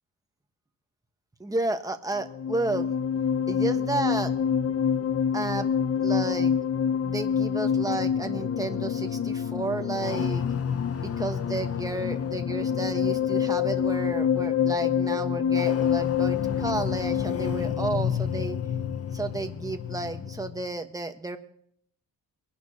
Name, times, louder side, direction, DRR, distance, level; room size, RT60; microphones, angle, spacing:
voice 1, 1.4-2.9 3.5-4.3 5.3-5.7 6.0-6.5 7.0-10.4 11.0-18.6 19.1-21.4, right 2 dB, 10° right, 6 dB, 1.3 m, -32 dB
sound 1, 2.2-20.6, left 8 dB, 45° left, 0.8 m, -27 dB
23.0 x 11.0 x 2.9 m, 0.63 s
cardioid pair, 110°, 34 cm